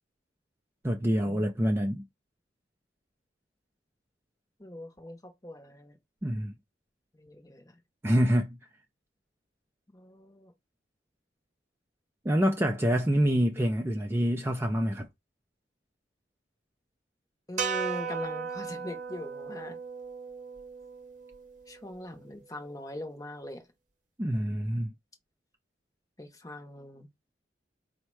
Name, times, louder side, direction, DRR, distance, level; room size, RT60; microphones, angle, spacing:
voice 1, 0.8-2.0 6.2-6.5 8.0-8.6 12.2-15.1 24.2-24.9, equal, 15° right, 0.4 m, -26 dB
voice 2, 4.6-5.9 7.1-7.8 9.9-10.5 17.5-19.8 21.7-23.7 26.2-27.1, left 1 dB, 20° left, 0.7 m, -42 dB
sound 1, 17.6-21.9, right 6 dB, 45° right, 0.8 m, -36 dB
4.5 x 2.1 x 4.5 m
head